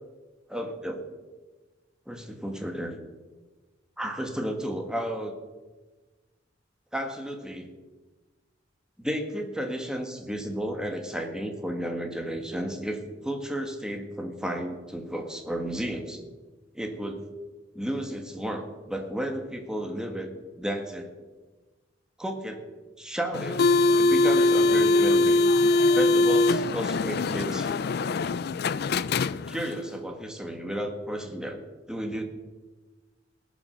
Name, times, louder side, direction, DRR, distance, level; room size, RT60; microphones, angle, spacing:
voice 1, 0.5-1.0 2.1-2.9 4.0-5.3 6.9-7.7 9.0-16.2 16.7-17.2 17.7-21.1 22.2-22.6 23.0-23.6 23.9-25.4 25.9-27.7 29.5-32.2, equal, 5° right, 4 dB, 1.6 m, -33 dB
sound 1, 23.3-29.8, left 2 dB, 55° left, 0.4 m, -22 dB
19.5 x 7.2 x 6.4 m, 1.3 s
head